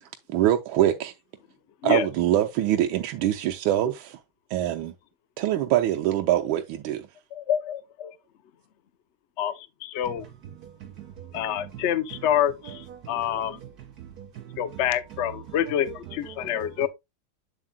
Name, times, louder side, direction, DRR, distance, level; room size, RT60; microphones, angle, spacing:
voice 1, 0.0-1.1 1.8-4.2 4.5-4.9 5.4-7.1, right 12 dB, 90° right, 1.4 m, -24 dB
voice 2, 7.3-8.1 9.4-10.3 11.3-13.6 14.6-16.9, left 10 dB, 80° left, 0.6 m, -27 dB
voice 3, 10.6-11.4 13.0-13.4 14.0-14.6 16.5-16.6, right 11 dB, 65° right, 0.9 m, -43 dB
7.8 x 7.3 x 2.2 m
omnidirectional pair, 2.2 m